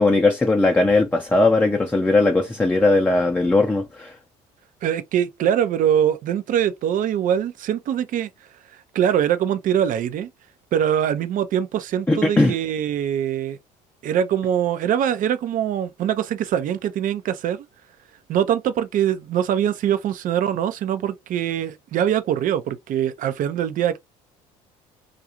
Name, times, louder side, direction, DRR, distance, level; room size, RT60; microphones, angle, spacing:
voice 1, 0.0-4.1 12.1-12.5, left 2 dB, 10° left, 0.5 m, -18 dB
voice 2, 4.8-8.3 8.9-10.3 10.7-13.6 14.0-17.6 18.3-24.0, right 9 dB, 50° right, 0.5 m, -23 dB
2.4 x 2.3 x 2.8 m
hypercardioid pair, 70°, 18 cm